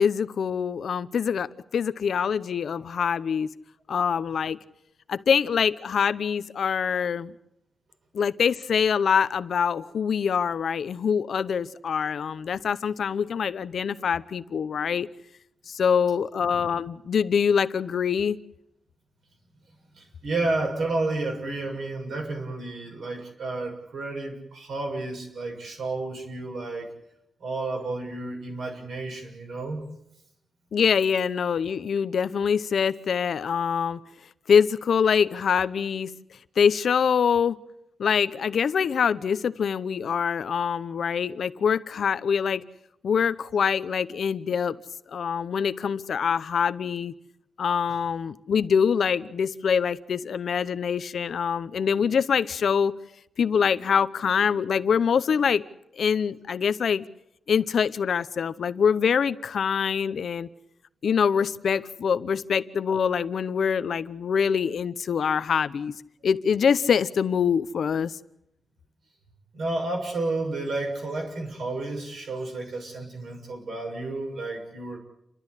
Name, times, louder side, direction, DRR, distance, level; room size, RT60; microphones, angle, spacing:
voice 1, 0.0-3.5 3.9-4.6 5.1-7.3 8.1-15.1 15.7-18.4 30.7-34.0 34.5-36.1 36.6-37.6 38.0-42.6 43.0-44.8 45.1-47.1 47.6-53.0 53.4-55.6 56.0-57.1 57.5-60.5 61.0-65.9 66.2-68.1, left 7 dB, 70° left, 14 dB, 0.8 m, -24 dB
voice 2, 19.9-26.9 27.4-29.8 69.5-75.0, right 2 dB, 70° right, 2 dB, 6.8 m, -31 dB
29.5 x 13.0 x 9.8 m, 0.81 s
wide cardioid pair, 170°, 0 cm